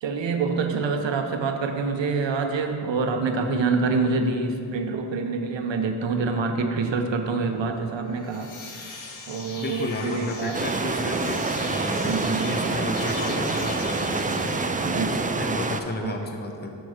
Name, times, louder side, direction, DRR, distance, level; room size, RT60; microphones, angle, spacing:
voice 1, 0.0-8.5 9.3-10.6 12.0-12.6 14.8-15.3 16.0-16.2, right 4 dB, 70° right, 5 dB, 0.8 m, -26 dB
sound 1, 8.1-15.5, left 3 dB, 75° left, 1.0 m, -40 dB
voice 2, 9.6-16.8, left 2 dB, 20° left, 3 dB, 0.8 m, -33 dB
sound 2, 10.5-15.8, right 3 dB, 20° right, 0.4 m, -27 dB
6.1 x 4.3 x 6.4 m, 2.5 s
cardioid pair, 40°, 47 cm